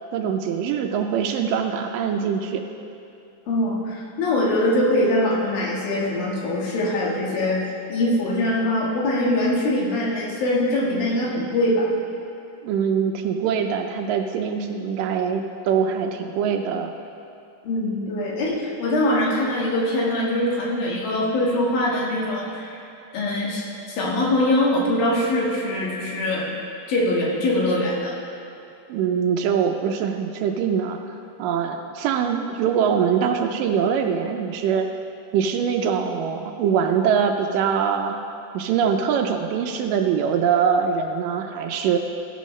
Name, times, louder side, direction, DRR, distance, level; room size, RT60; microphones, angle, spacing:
voice 1, 0.1-2.6 12.6-16.9 28.9-31.1 31.4-34.9 35.3-38.2 38.5-42.0, right 7 dB, 80° right, 5 dB, 2.2 m, -23 dB
voice 2, 3.5-11.9 17.6-22.8 23.1-26.5 26.9-28.2, left 1 dB, 80° left, -4 dB, 3.4 m, -23 dB
15.0 x 11.0 x 3.2 m, 2.7 s
omnidirectional pair, 4.0 m